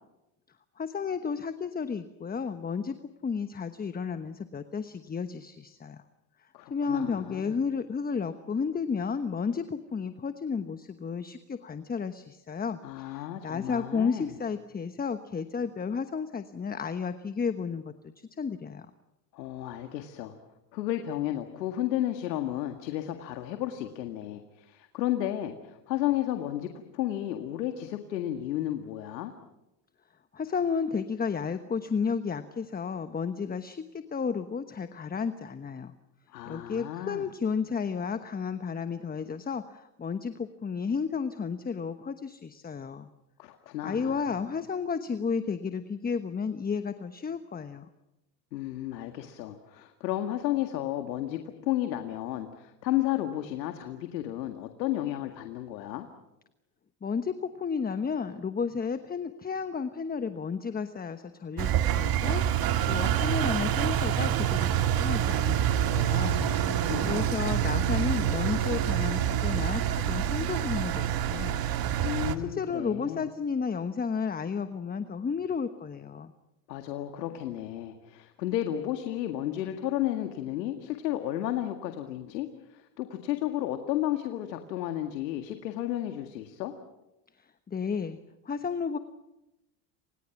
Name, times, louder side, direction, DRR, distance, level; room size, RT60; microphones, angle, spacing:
voice 1, 0.8-3.0 3.2-6.0 6.7-18.9 30.3-35.9 36.4-43.1 43.8-47.9 57.0-66.4 67.0-71.6 72.5-76.3 87.4-88.2 88.4-89.0, left 5 dB, 20° left, 10 dB, 1.1 m, -32 dB
voice 2, 6.5-7.6 12.8-14.3 19.3-20.4 20.7-29.3 36.3-37.3 43.4-44.4 48.5-56.1 66.0-67.6 72.0-73.3 76.7-86.7, left 13 dB, 85° left, 6 dB, 2.0 m, -33 dB
Engine, 61.6-72.4, right 10 dB, 45° right, 2.0 m, -27 dB
29.5 x 27.0 x 6.0 m, 0.94 s
hypercardioid pair, 90°, 49 cm